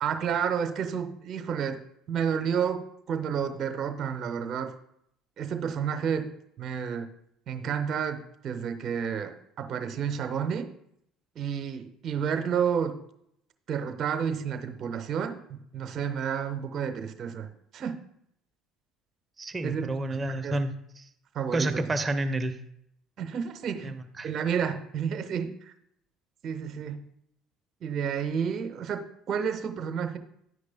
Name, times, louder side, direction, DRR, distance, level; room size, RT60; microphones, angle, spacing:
voice 1, 0.0-1.8 2.1-4.7 5.4-6.3 6.6-7.1 7.5-10.7 11.3-13.0 13.7-18.0 19.6-20.6 21.3-21.8 23.2-23.9 24.2-25.7 26.4-27.0 27.8-30.2, right 7 dB, 50° right, 8 dB, 1.0 m, -30 dB
voice 2, 19.4-21.1 21.5-22.6 23.8-24.3, right 2 dB, 25° right, 9 dB, 0.8 m, -30 dB
11.0 x 9.6 x 2.2 m, 0.72 s
hypercardioid pair, 60°, 0 cm